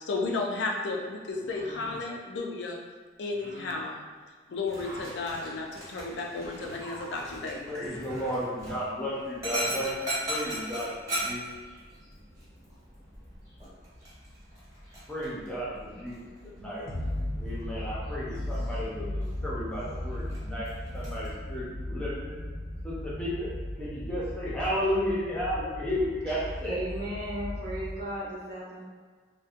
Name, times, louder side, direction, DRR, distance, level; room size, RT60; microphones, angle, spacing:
voice 1, 0.0-2.8 3.2-4.1 4.5-7.8, left 3 dB, 60° left, 0 dB, 0.4 m, -33 dB
sound 1, 1.3-2.0 3.3-3.8 4.6-5.2 6.2-6.8 7.5-7.6 7.9-8.5 9.3-9.9, equal, 90° right, 0.8 m, -48 dB
Dog, 4.6-21.3, right 1 dB, 15° right, 0.9 m, -40 dB
voice 2, 7.7-11.5 15.1-16.8 17.4-22.3 22.8-23.5 23.8-26.7, equal, 5° left, -9 dB, 0.6 m, -33 dB
sound 2, 16.9-28.0, left 1 dB, 35° right, 0.4 m, -36 dB
voice 3, 26.6-28.8, right 1 dB, 55° right, -7 dB, 0.8 m, -35 dB
2.6 x 2.1 x 2.4 m, 1.5 s
head